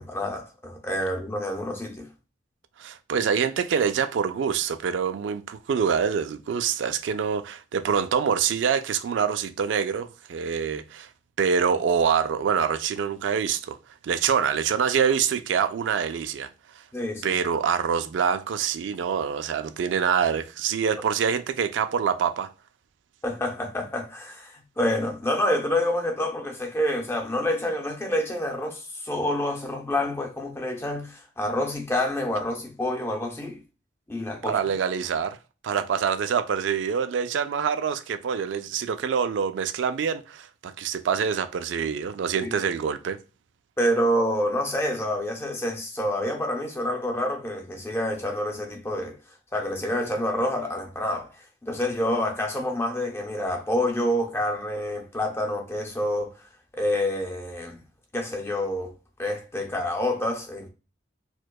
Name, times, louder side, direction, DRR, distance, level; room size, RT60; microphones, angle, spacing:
voice 1, 0.0-2.1 16.9-17.3 23.2-33.6 34.1-34.6 42.3-42.7 43.8-49.2 49.5-51.3 51.6-56.4 56.7-57.8 58.1-58.9 59.2-60.7, left 1 dB, 15° left, 0.5 m, -27 dB
voice 2, 2.8-11.1 11.4-13.8 14.0-16.5 17.2-22.5 34.4-35.4 35.6-43.2, right 7 dB, 80° right, 0.3 m, -25 dB
4.5 x 2.2 x 2.3 m
head